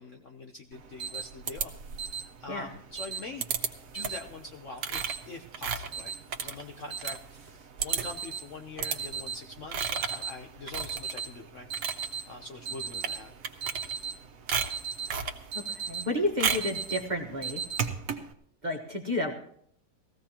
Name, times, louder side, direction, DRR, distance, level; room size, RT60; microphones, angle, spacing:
voice 1, 0.0-3.5 3.9-12.0 12.3-13.3, left 3 dB, 55° left, 3 dB, 1.0 m, -44 dB
Alarm, 0.7-18.3, right 6 dB, 50° right, 1.3 m, -39 dB
sound 1, 1.5-2.2 3.4-3.7 4.0-4.3 4.8-7.2 7.5-7.6 7.8-8.2 8.8-9.0 9.7-10.2 10.7-11.2 11.6-12.1 12.9-13.2 13.4-14.2 14.5-15.4 16.4-16.8, right 7 dB, 70° right, 1.5 m, -32 dB
voice 2, 15.5-17.6 18.6-19.3, left 1 dB, 25° right, 0 dB, 1.3 m, -31 dB
20.0 x 15.5 x 2.9 m, 0.65 s
omnidirectional pair, 2.0 m